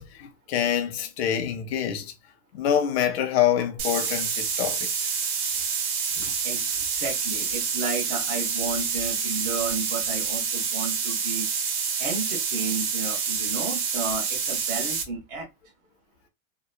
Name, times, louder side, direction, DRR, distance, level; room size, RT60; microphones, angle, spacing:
voice 1, 0.0-2.1 2.5-5.1 6.2-6.3, left 9 dB, 45° left, 0.4 m, -26 dB
sound 1, 3.8-15.0, right 6 dB, 75° right, 1.0 m, -28 dB
voice 2, 6.4-11.5 12.0-15.5, right 4 dB, 30° right, 1.0 m, -32 dB
2.8 x 2.1 x 2.2 m
supercardioid pair, 180°, 44 cm